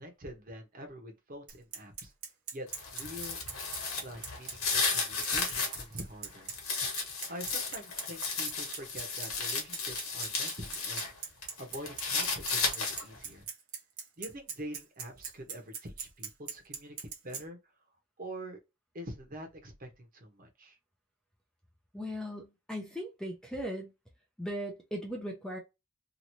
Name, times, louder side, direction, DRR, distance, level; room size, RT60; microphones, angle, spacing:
voice 1, 0.0-2.1 2.5-2.7 2.9-3.4 4.0-6.5 7.3-11.1 11.6-13.5 14.2-17.6 18.2-18.6 18.9-20.8, equal, 40° right, 0.9 m, -45 dB
Bicycle, 1.5-17.4, right 7 dB, 85° right, 1.0 m, -40 dB
sound 1, 2.7-5.8 6.2-11.1 11.4-13.2, left 4 dB, 85° left, 1.2 m, -34 dB
voice 2, 21.9-23.9 24.4-25.6, equal, 5° left, 0.5 m, -38 dB
3.0 x 2.6 x 2.7 m
head